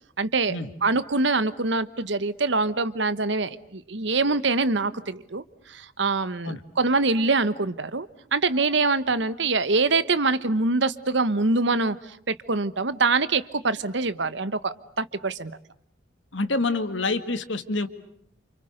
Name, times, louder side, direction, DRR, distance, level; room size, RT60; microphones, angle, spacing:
voice 1, 0.2-0.6 0.8-5.4 5.7-12.0 12.3-15.6, right 3 dB, 65° right, 14 dB, 1.2 m, -24 dB
voice 2, 16.3-17.9, left 3 dB, 70° left, 10 dB, 2.1 m, -27 dB
29.0 x 28.5 x 6.7 m, 0.67 s
head